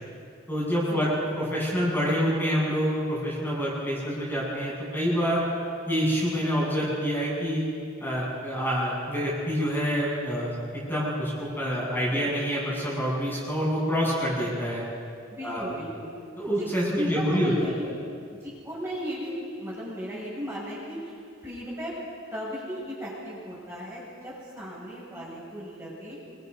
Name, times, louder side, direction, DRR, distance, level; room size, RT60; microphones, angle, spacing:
voice 1, 0.5-1.1 1.4-5.5 5.9-7.6 8.0-14.8 15.4-15.6 16.4-17.7, equal, 10° left, -6 dB, 7.8 m, -27 dB
voice 2, 15.3-16.1 16.6-16.7 17.0-17.8 18.4-21.1 21.4-21.9 22.3-26.2, equal, 10° right, -7 dB, 7.8 m, -36 dB
29.0 x 25.0 x 5.6 m, 2.4 s
head